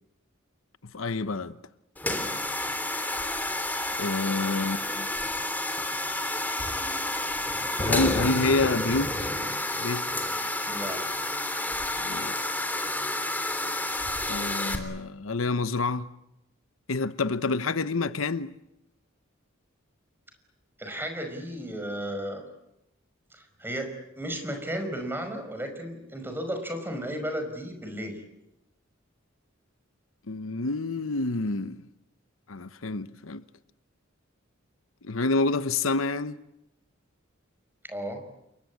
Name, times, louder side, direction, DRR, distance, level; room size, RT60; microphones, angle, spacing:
voice 1, 0.9-1.6 4.0-5.1 7.8-9.1 9.8-10.1 12.0-12.3 14.3-16.1 16.9-18.5 30.3-31.8 32.5-33.4 35.0-36.3, left 3 dB, 90° left, 1.0 m, -28 dB
sound 1, 2.0-14.8, left 1 dB, 10° left, 3.4 m, -30 dB
voice 2, 10.7-11.0 20.8-22.4 23.3-28.2 37.9-38.2, equal, 10° right, 5.5 m, -34 dB
29.0 x 23.5 x 8.6 m
head